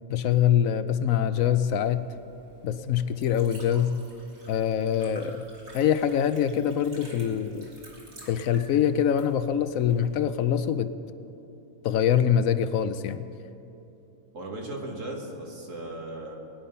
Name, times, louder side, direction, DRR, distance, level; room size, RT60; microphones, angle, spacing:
voice 1, 0.1-2.1 2.6-4.0 4.5-5.5 5.7-7.7 8.3-10.9 11.8-13.3, left 9 dB, 80° left, 12 dB, 1.1 m, -24 dB
Liquid, 1.7-10.3, right 1 dB, 85° right, 3.3 m, -51 dB
voice 2, 14.3-16.3, right 1 dB, 65° right, 0 dB, 2.4 m, -37 dB
20.5 x 10.0 x 5.6 m, 2.9 s
omnidirectional pair, 1.4 m